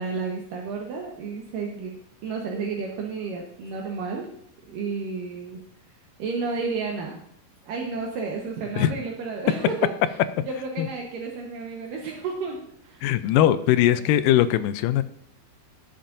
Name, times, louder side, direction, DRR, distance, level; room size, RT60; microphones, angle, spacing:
voice 1, 0.0-1.9 2.2-4.4 4.7-5.6 6.2-7.2 7.7-9.9 10.5-13.2 13.9-14.0, right 4 dB, 75° right, 0 dB, 2.7 m, -32 dB
voice 2, 13.0-15.0, left 12 dB, 80° left, 13 dB, 2.1 m, -20 dB
18.5 x 7.1 x 2.6 m, 0.68 s
omnidirectional pair, 4.0 m